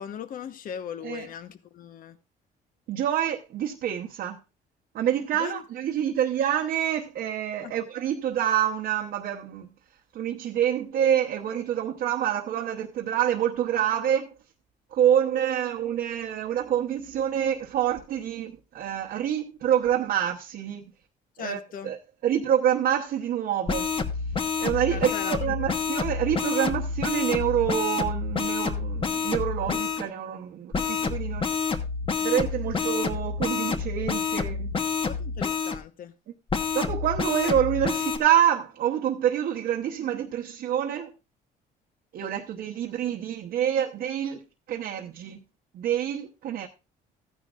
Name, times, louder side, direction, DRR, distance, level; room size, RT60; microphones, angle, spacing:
voice 1, 0.0-2.2 5.4-5.6 7.6-7.7 21.4-21.9 24.9-25.5 35.1-36.1, left 8 dB, 55° left, 1.1 m, -38 dB
voice 2, 2.9-4.4 4.9-9.7 10.1-14.3 14.9-20.8 21.4-23.9 24.6-31.6 32.2-34.7 36.7-41.1 42.1-45.4 45.7-46.7, right 10 dB, 65° right, 1.0 m, -27 dB
sound 1, 23.7-30.0 30.7-35.8 36.5-38.2, left 5 dB, 30° left, 1.2 m, -28 dB
14.5 x 9.8 x 2.5 m
cardioid pair, 110°, 17 cm